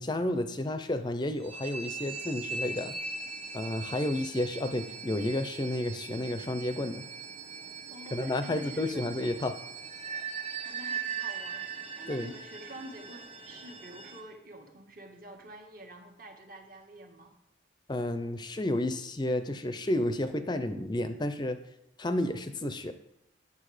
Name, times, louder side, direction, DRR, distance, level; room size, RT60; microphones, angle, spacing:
voice 1, 0.0-2.9 3.5-7.1 8.1-9.5 12.1-12.3 17.9-21.6 22.0-22.9, left 1 dB, 25° left, 10 dB, 0.5 m, -31 dB
sound 1, 1.4-14.2, right 5 dB, 30° right, 1.1 m, -40 dB
voice 2, 7.9-9.5 10.6-17.3, right 1 dB, 50° right, 2 dB, 1.6 m, -48 dB
9.9 x 7.0 x 4.9 m, 0.84 s
head